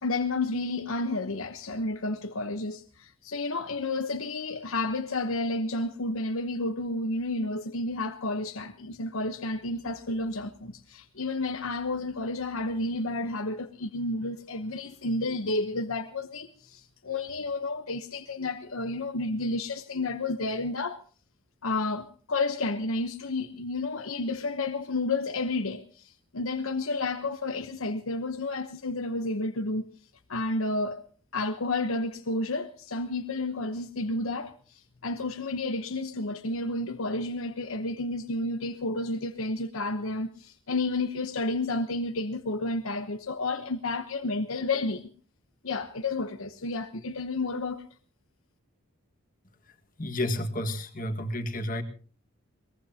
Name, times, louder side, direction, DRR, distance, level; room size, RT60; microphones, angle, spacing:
voice 1, 0.0-21.0 21.6-29.8 30.3-31.0 31.3-45.1 45.6-47.8, left 2 dB, 80° left, 1.1 m, -31 dB
voice 2, 50.0-51.8, left 1 dB, 40° left, 1.9 m, -31 dB
22.5 x 20.0 x 2.9 m
head